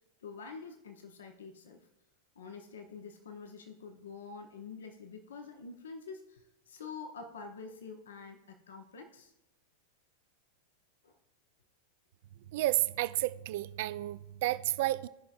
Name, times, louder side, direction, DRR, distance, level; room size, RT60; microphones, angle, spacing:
voice 1, 0.2-1.9 2.4-9.3 11.0-11.1, left 5 dB, 65° left, 0.8 m, -47 dB
voice 2, 12.5-15.1, right 16 dB, 50° right, 0.4 m, -31 dB
17.0 x 5.9 x 2.5 m
figure-of-eight pair, 90°, 0 cm